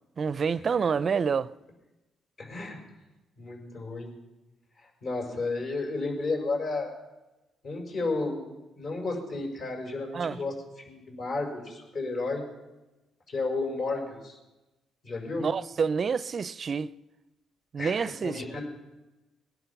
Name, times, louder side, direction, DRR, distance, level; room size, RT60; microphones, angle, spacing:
voice 1, 0.2-1.5 10.1-10.4 15.4-16.9 17.7-18.6, right 6 dB, 45° right, 0.4 m, -28 dB
voice 2, 2.4-2.8 3.4-4.1 5.0-6.9 7.6-8.4 8.8-10.5 10.9-12.4 13.3-14.4 15.0-15.5 17.8-18.6, left 3 dB, 60° left, 5.6 m, -32 dB
20.5 x 11.0 x 5.9 m
cardioid pair, 90°, 0 cm